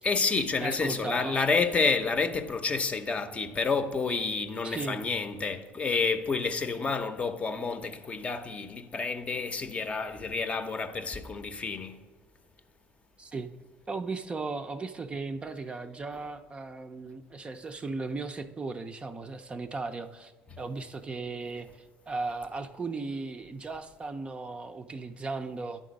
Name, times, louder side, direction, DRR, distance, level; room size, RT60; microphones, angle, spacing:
voice 1, 0.0-12.0 20.5-20.6, left 4 dB, 30° left, 0.7 m, -29 dB
voice 2, 0.6-1.4 4.6-5.1 13.2-13.5 13.9-20.3 20.6-25.8, right 3 dB, 25° right, 0.4 m, -36 dB
10.0 x 3.8 x 5.2 m
supercardioid pair, 95°, 5 cm